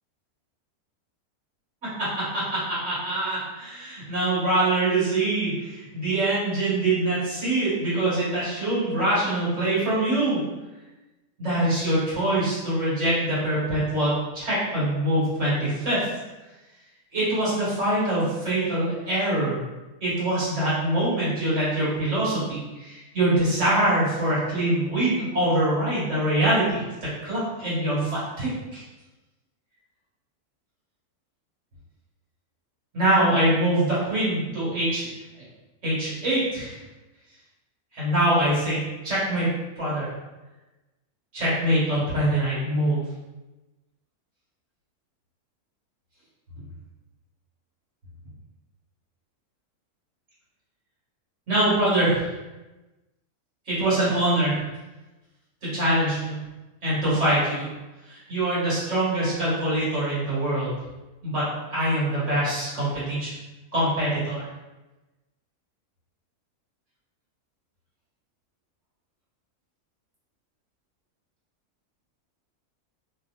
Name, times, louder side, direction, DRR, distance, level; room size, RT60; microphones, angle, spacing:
voice 1, 2.0-10.4 11.4-16.1 17.1-19.6 20.0-26.8 27.2-28.8 32.9-35.1 35.8-36.8 37.9-39.5 39.8-40.1 41.3-43.0 51.5-52.3 53.7-54.6 55.6-56.4 56.8-57.7 58.1-60.7 61.2-63.3 63.7-64.4, right 1 dB, 55° right, -10 dB, 1.6 m, -24 dB
2.8 x 2.8 x 2.4 m, 1.1 s
omnidirectional pair, 1.6 m